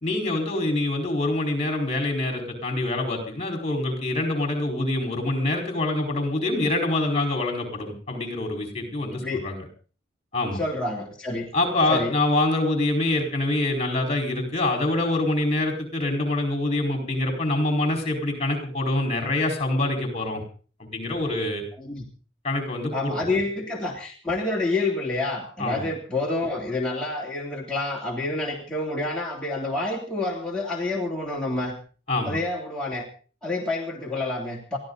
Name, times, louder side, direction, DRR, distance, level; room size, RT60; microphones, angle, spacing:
voice 1, 0.0-9.6 10.3-10.6 11.5-20.4 20.8-21.6 22.4-23.3 25.6-25.9 32.1-32.4, left 2 dB, 30° left, 3 dB, 4.7 m, -25 dB
voice 2, 10.5-11.5 11.9-12.1 21.8-22.1 22.9-31.8 32.2-33.1 33.4-34.8, left 2 dB, 5° left, -5 dB, 3.0 m, -28 dB
22.5 x 15.0 x 4.0 m, 0.40 s
head